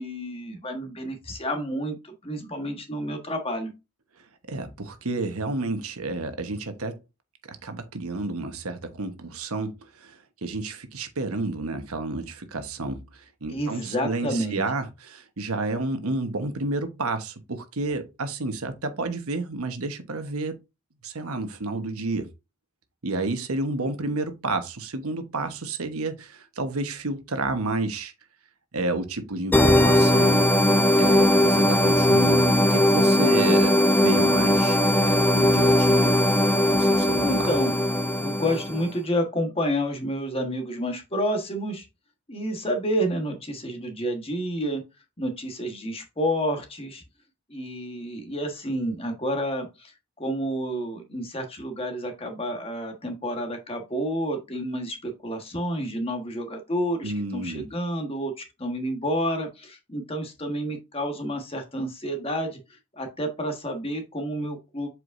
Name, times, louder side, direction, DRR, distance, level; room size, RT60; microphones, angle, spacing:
voice 1, 0.0-3.7 13.5-14.6 37.2-37.7 38.2-41.8 42.3-44.8 45.2-47.0 47.5-64.9, equal, 25° left, 1.3 m, -29 dB
voice 2, 4.5-7.0 7.6-20.6 21.0-22.3 23.0-28.1 28.7-30.4 30.9-36.1 36.7-37.5 57.0-57.7, right 2 dB, 75° right, 1.1 m, -30 dB
sound 1, 29.5-38.9, left 1 dB, 10° left, 0.4 m, -19 dB
7.9 x 4.8 x 2.6 m
head